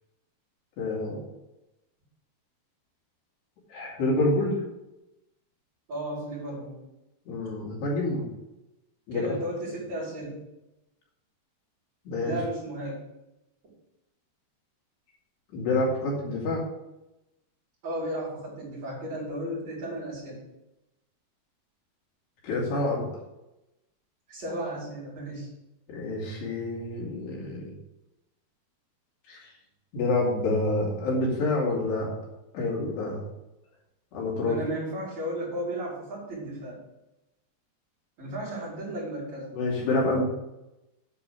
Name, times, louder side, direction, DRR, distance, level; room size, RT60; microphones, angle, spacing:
voice 1, 0.8-1.2 3.7-4.6 7.3-8.3 9.1-9.3 12.1-12.3 15.5-16.6 22.4-23.1 25.9-27.7 29.3-29.5 29.9-32.2 32.5-33.2 34.1-34.6 39.5-40.2, left 2 dB, 75° left, -4 dB, 4.8 m, -27 dB
voice 2, 5.9-6.8 9.1-10.4 12.2-13.0 17.8-20.4 24.3-25.5 34.4-36.8 38.2-39.5, right 1 dB, 40° right, -9 dB, 4.9 m, -34 dB
10.0 x 4.8 x 8.0 m, 0.93 s
omnidirectional pair, 4.9 m